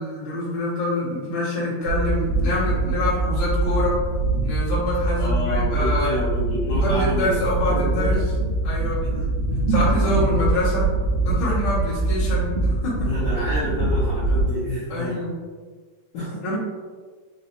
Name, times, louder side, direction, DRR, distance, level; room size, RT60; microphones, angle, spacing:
voice 1, 0.0-4.0 4.4-6.2 6.8-8.2 8.6-9.0 9.7-10.9 11.2-13.1 14.9-15.3 16.4-16.6, left 1 dB, 65° left, -10 dB, 1.1 m, -26 dB
sound 1, 1.8-14.5, right 2 dB, 75° right, 2.7 m, -23 dB
voice 2, 5.2-7.3 7.7-8.2 9.0-9.3 13.0-15.2 16.1-16.6, left 1 dB, 85° left, -11 dB, 1.6 m, -28 dB
6.2 x 2.1 x 2.7 m, 1.5 s
omnidirectional pair, 4.7 m